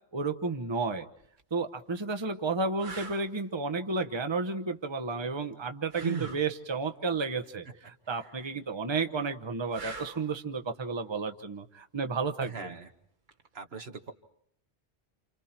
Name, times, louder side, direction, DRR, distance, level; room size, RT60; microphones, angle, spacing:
voice 1, 0.1-1.1 1.5-12.8, right 4 dB, 25° right, 7 dB, 1.1 m, -32 dB
sound 1, 1.2-1.4 2.1-2.2 2.8-3.3 5.9-6.5 9.7-10.3 13.3-13.5, right 5 dB, 50° right, 1.4 m, -38 dB
voice 2, 12.4-12.9 13.5-14.1, right 4 dB, 70° right, 6 dB, 1.7 m, -41 dB
29.0 x 28.0 x 4.5 m, 0.69 s
omnidirectional pair, 1.1 m